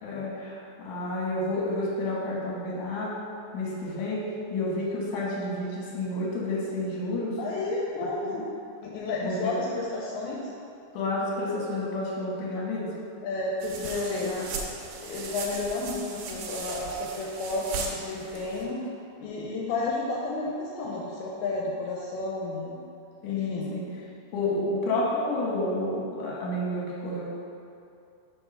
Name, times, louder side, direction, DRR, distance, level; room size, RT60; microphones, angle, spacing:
voice 1, 0.0-3.2 3.5-7.4 8.3-8.4 9.2-9.5 10.9-12.9 14.1-14.4 23.2-23.8 24.3-27.2, left 2 dB, 60° left, -4 dB, 2.3 m, -30 dB
voice 2, 7.4-8.5 8.8-10.4 13.2-14.3 15.0-18.8 19.2-22.8 23.2-23.8, left 2 dB, 85° left, -3 dB, 2.5 m, -31 dB
sound 1, 13.6-18.6, right 5 dB, 90° right, 1.9 m, -37 dB
5.5 x 4.7 x 5.5 m, 2.6 s
omnidirectional pair, 4.8 m